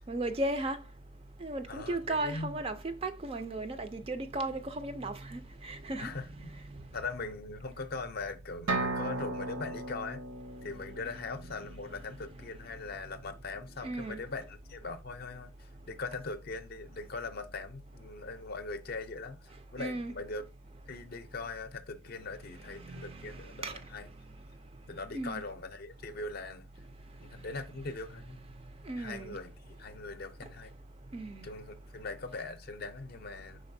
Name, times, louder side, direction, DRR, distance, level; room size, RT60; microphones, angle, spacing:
voice 1, 0.1-0.8 1.4-6.1 11.5-11.6 13.8-14.2 19.8-20.2 22.8-23.4 23.6-23.7 25.1-25.4 28.9-29.4 31.1-31.5, right 2 dB, 25° right, 0.4 m, -36 dB
voice 2, 1.7-2.6 6.0-6.5 6.9-10.2 10.6-15.5 15.8-20.4 20.9-24.1 24.9-26.7 27.2-28.4 29.0-30.7 31.4-33.6, left 3 dB, 50° left, 0.5 m, -41 dB
sound 1, 8.7-12.4, right 2 dB, 70° right, 0.7 m, -37 dB
5.1 x 3.9 x 2.6 m
head